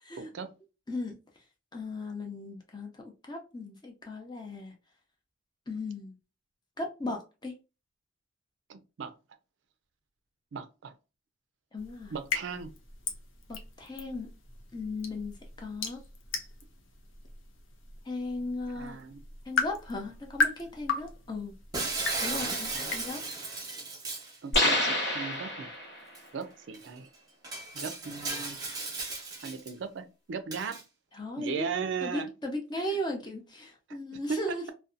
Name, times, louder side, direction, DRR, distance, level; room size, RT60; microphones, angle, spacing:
voice 1, 0.2-0.5 8.7-9.2 10.5-10.9 12.1-12.7 18.8-19.2 22.3-22.9 24.4-25.7 26.3-27.1 27.7-28.6 29.4-30.8 31.4-32.3 34.3-34.7, right 5 dB, 65° right, 0.4 m, -37 dB
voice 2, 0.9-1.2 1.7-4.7 5.7-6.2 6.8-7.5 11.7-12.1 13.5-14.3 14.7-16.0 18.0-19.0 19.4-21.5 22.2-23.2 31.1-31.7 32.0-34.7, left 2 dB, 20° left, 0.5 m, -37 dB
sound 1, 11.8-23.1, left 3 dB, 75° left, 0.6 m, -37 dB
Shatter, 21.7-24.4 26.2-26.3 26.7-26.9 27.4-29.7 30.5-30.8, right 3 dB, 20° right, 0.8 m, -35 dB
sound 2, 24.5-26.1, left 1 dB, 60° left, 1.0 m, -27 dB
2.6 x 2.2 x 2.4 m
head